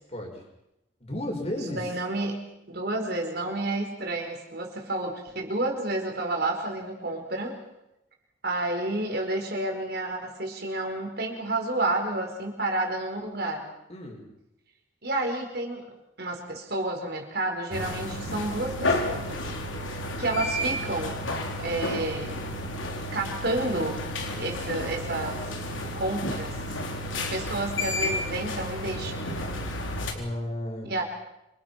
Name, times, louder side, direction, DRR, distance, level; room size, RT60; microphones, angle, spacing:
voice 1, 0.1-0.4 1.0-2.0 13.9-14.2 30.1-30.9, left 1 dB, 35° left, 2 dB, 6.2 m, -33 dB
voice 2, 1.7-2.4 2.7-7.6 8.4-13.7 15.0-15.8 16.2-19.4 20.2-21.2 21.6-22.4 23.1-24.0 24.4-25.5 25.9-26.6 27.1-29.3 30.8-31.1, right 2 dB, 55° right, 2 dB, 4.9 m, -30 dB
sound 1, 17.7-30.1, left 1 dB, 85° left, 4.1 m, -31 dB
27.0 x 26.5 x 6.0 m, 0.89 s
head